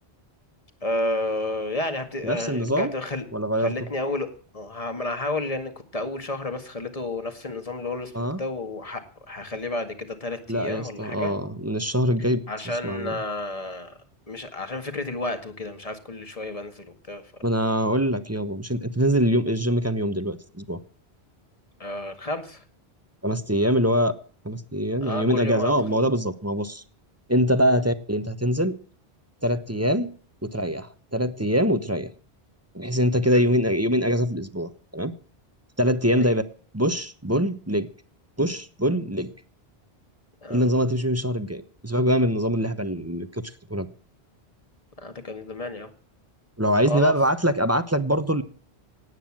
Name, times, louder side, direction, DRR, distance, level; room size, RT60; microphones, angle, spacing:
voice 1, 0.8-3.2 3.6-8.1 8.4-9.0 9.3-11.3 12.5-14.0 14.3-17.2 21.8-22.6 25.0-25.7 33.2-33.4 36.2-36.3 40.4-40.6 45.0-45.9 46.8-47.1, left 2 dB, 35° left, 7 dB, 2.1 m, -31 dB
voice 2, 2.2-2.9 3.3-3.7 8.1-8.4 10.5-12.4 12.6-13.2 17.4-20.8 23.2-24.1 24.4-26.8 27.3-28.8 29.4-30.1 30.4-32.1 32.7-35.1 35.8-36.4 36.7-37.9 38.4-39.3 40.5-43.4 43.7-43.9 46.6-48.4, equal, 15° right, 11 dB, 0.9 m, -23 dB
18.0 x 9.4 x 7.4 m, 0.43 s
omnidirectional pair, 1.1 m